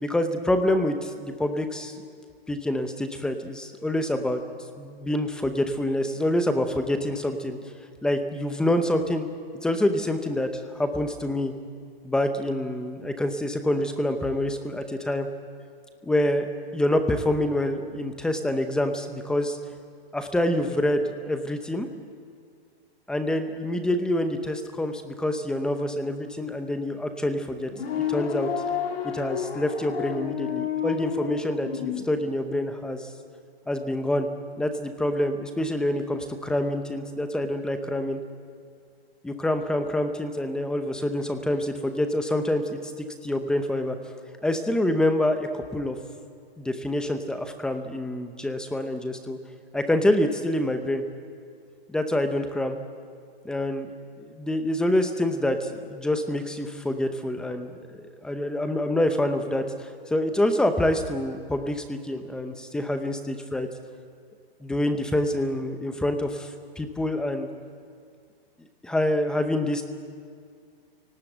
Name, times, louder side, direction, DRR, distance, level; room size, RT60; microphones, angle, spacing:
voice 1, 0.0-1.9 2.5-4.4 4.8-7.6 8.0-9.3 9.6-11.5 12.0-15.3 16.0-19.6 20.1-21.9 23.1-27.7 28.1-28.5 29.0-33.1 33.7-34.3 34.6-38.2 39.2-42.9 43.2-44.0 44.4-46.0 46.6-49.4 49.7-51.0 51.9-52.8 53.4-53.9 54.2-63.7 64.6-67.5 68.8-69.8, left 1 dB, 5° left, 7 dB, 0.7 m, -26 dB
sound 1, 27.7-32.1, left 9 dB, 70° left, 2.6 m, -30 dB
27.0 x 18.5 x 7.9 m, 2.2 s
hypercardioid pair, 155°, 31 cm